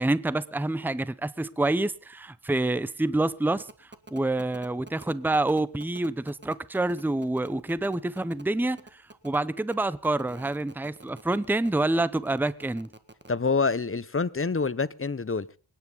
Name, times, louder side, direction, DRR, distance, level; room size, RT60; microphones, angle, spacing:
voice 1, 0.0-12.9, right 2 dB, 5° right, 0.7 m, -27 dB
sound 1, 3.6-13.3, right 2 dB, 25° right, 1.7 m, -48 dB
voice 2, 13.3-15.5, left 4 dB, 30° left, 0.8 m, -26 dB
26.5 x 10.0 x 4.0 m
cardioid pair, 50°, 47 cm